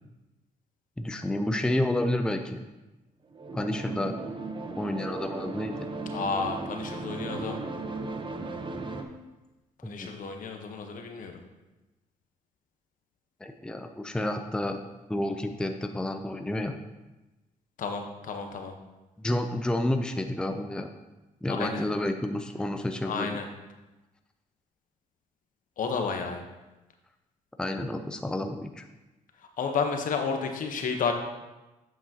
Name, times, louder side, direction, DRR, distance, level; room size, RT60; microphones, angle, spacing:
voice 1, 1.0-2.6 3.5-4.1 4.8-5.9 9.8-10.1 13.4-14.8 15.1-16.8 19.2-20.9 21.4-23.4 27.6-28.8, left 1 dB, 5° left, 6 dB, 0.5 m, -30 dB
sound 1, 3.3-9.0, right 3 dB, 35° right, 0.9 m, -36 dB
voice 2, 6.1-7.6 9.8-11.4 17.8-18.7 21.5-21.9 23.0-23.5 25.8-26.4 29.4-31.1, left 5 dB, 65° left, 4 dB, 1.1 m, -31 dB
8.1 x 7.2 x 2.9 m, 1.1 s
cardioid pair, 80°, 15 cm